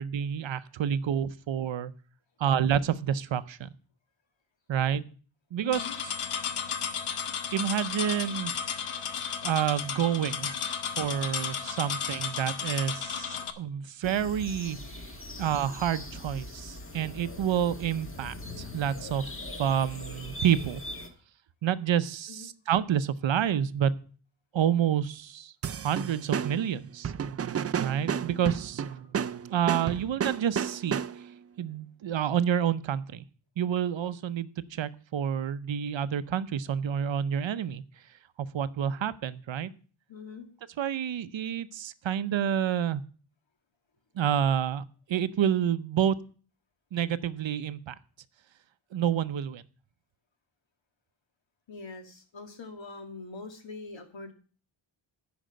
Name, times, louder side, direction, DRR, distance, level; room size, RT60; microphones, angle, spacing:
voice 1, 0.0-1.9 2.4-3.7 4.7-5.0 5.5-6.1 7.5-8.5 9.4-10.6 11.0-14.8 15.4-19.2 19.6-20.8 21.6-23.9 24.5-25.5 25.8-27.1 27.8-28.8 29.5-31.0 31.6-33.2 33.6-37.8 38.4-39.7 40.8-43.0 44.2-46.2 46.9-48.0 48.9-49.6, right 9 dB, 65° right, 14 dB, 0.7 m, -28 dB
voice 2, 5.6-6.0 22.3-22.5 40.1-40.5 51.7-54.3, left 4 dB, 60° left, 5 dB, 2.2 m, -43 dB
sound 1, 5.7-13.5, left 7 dB, 90° left, 1.1 m, -33 dB
sound 2, 14.0-21.1, left 1 dB, 25° left, 1.5 m, -41 dB
sound 3, 25.6-31.4, right 8 dB, 35° right, 0.4 m, -32 dB
10.0 x 5.2 x 7.6 m, 0.41 s
wide cardioid pair, 95°, 50 cm